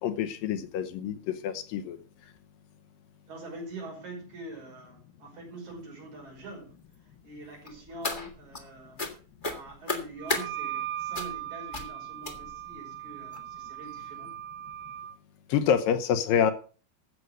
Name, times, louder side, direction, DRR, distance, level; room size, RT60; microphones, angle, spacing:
voice 1, 0.0-2.0 15.5-16.5, left 8 dB, 75° left, 8 dB, 2.6 m, -27 dB
voice 2, 3.3-9.0 9.5-14.3, right 2 dB, 50° right, 0 dB, 6.5 m, -44 dB
sound 1, 7.6-8.6 9.0-9.1 9.4-10.4 11.1-11.4 11.7-11.9 12.2-12.6 13.3-13.4 13.8-14.0 14.3-14.4, left 2 dB, 60° left, 0.5 m, -33 dB
Wind instrument woodwind instrument, 10.2-15.2, right 12 dB, 85° right, 1.6 m, -38 dB
12.5 x 7.9 x 6.4 m, 0.40 s
omnidirectional pair, 4.2 m